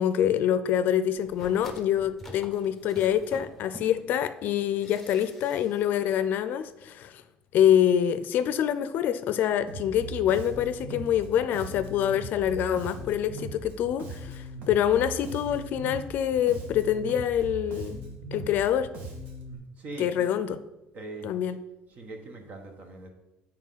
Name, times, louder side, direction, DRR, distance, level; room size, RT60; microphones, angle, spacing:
voice 1, 0.0-7.2 7.5-18.0 18.3-18.9 20.0-20.6 21.2-21.6, left 10 dB, 65° left, 12 dB, 0.4 m, -26 dB
sound 1, 1.1-4.1 4.8-5.8 6.1-6.2, left 1 dB, 5° left, 1.0 m, -47 dB
Bass guitar, 9.7-19.6, right 2 dB, 75° right, 1.8 m, -39 dB
voice 2, 19.8-20.3 20.9-21.3 21.9-23.1, right 2 dB, 50° right, 4 dB, 1.3 m, -41 dB
7.3 x 4.6 x 5.6 m, 0.98 s
cardioid pair, 120°, 3 cm